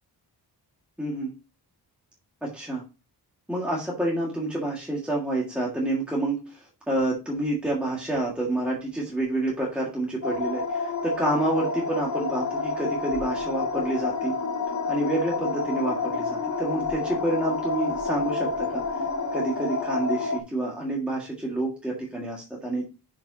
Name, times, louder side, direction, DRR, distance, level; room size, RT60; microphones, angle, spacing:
voice 1, 1.0-1.3 2.4-2.8 3.5-14.4 14.9-19.0 19.3-22.8, right 2 dB, 5° right, -4 dB, 1.8 m, -28 dB
sound 1, 10.2-20.4, left 4 dB, 40° left, 1.0 m, -29 dB
8.8 x 5.1 x 2.8 m, 0.30 s
wide cardioid pair, 130°, 42 cm